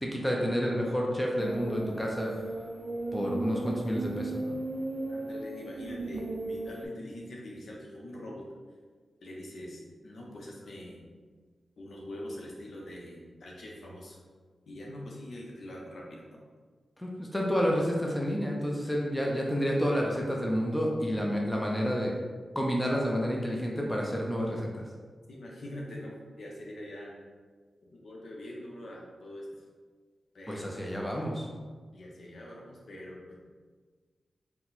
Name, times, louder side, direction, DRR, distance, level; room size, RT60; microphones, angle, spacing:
voice 1, 0.0-2.3 3.1-4.6 17.0-22.1 22.5-24.8 30.5-31.5, equal, 5° left, -2 dB, 0.5 m, -29 dB
sound 1, 1.4-6.9, right 2 dB, 50° right, 0.4 m, -36 dB
voice 2, 5.1-8.5 9.2-11.1 11.8-14.2 14.7-16.4 25.3-27.2 27.9-29.6 30.3-30.7 31.9-33.4, left 1 dB, 65° left, -2 dB, 0.8 m, -43 dB
4.4 x 2.2 x 4.0 m, 1.5 s
wide cardioid pair, 125°, 0 cm